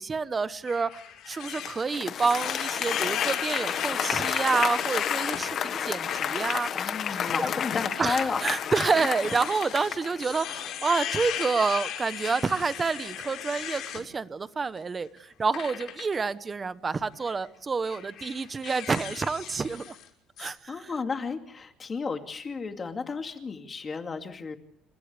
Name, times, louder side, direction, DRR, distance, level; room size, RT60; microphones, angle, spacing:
voice 1, 0.0-6.9 7.4-7.5 8.0-20.0 20.4-20.9, right 4 dB, 20° right, 13 dB, 1.1 m, -28 dB
sound 1, 0.7-5.4 5.9-6.3 6.7-6.9 7.9-14.0 15.5-16.2 17.1-17.4 17.8-20.1 20.4-20.5, left 10 dB, 55° left, 5.7 m, -37 dB
Applause, 1.5-10.5, left 8 dB, 40° left, 1.6 m, -31 dB
voice 2, 6.7-8.4 20.7-24.6, left 5 dB, 20° left, 5 dB, 2.6 m, -32 dB
30.0 x 27.5 x 3.5 m, 0.64 s
cardioid pair, 165°, 0 cm